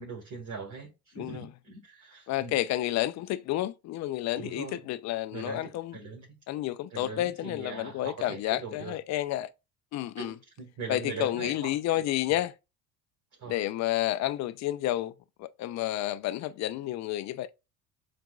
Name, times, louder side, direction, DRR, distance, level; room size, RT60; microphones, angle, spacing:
voice 1, 0.0-2.6 4.4-4.8 5.3-6.4 6.9-9.0 10.2-12.0 13.4-13.6, right 4 dB, 35° right, 1.9 m, -41 dB
voice 2, 1.2-1.5 2.3-6.0 6.5-9.5 9.9-10.4 10.9-12.5 13.5-15.1 15.4-17.5, left 14 dB, 35° left, 0.4 m, -30 dB
7.1 x 2.5 x 2.3 m
hypercardioid pair, 65°, 48 cm